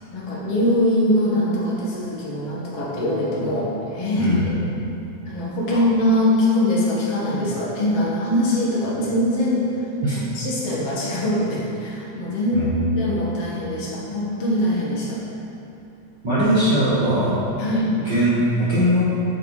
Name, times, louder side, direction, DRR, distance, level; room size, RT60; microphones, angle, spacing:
voice 1, 0.1-4.6 5.3-9.7 10.1-15.2 17.6-17.9, left 1 dB, 55° left, -5 dB, 2.4 m, -22 dB
voice 2, 12.5-12.9 16.2-17.4 18.1-19.0, equal, 45° right, -10 dB, 1.9 m, -20 dB
9.5 x 8.1 x 3.3 m, 2.8 s
omnidirectional pair, 3.5 m